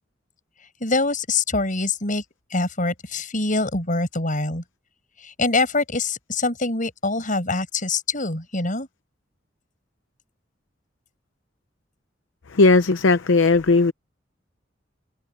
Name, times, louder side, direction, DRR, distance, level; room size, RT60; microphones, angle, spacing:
voice 1, 0.8-2.2 2.5-4.6 5.2-8.9, left 3 dB, 45° left, 7.0 m, -24 dB
voice 2, 12.5-13.9, left 3 dB, 90° left, 0.7 m, -17 dB
head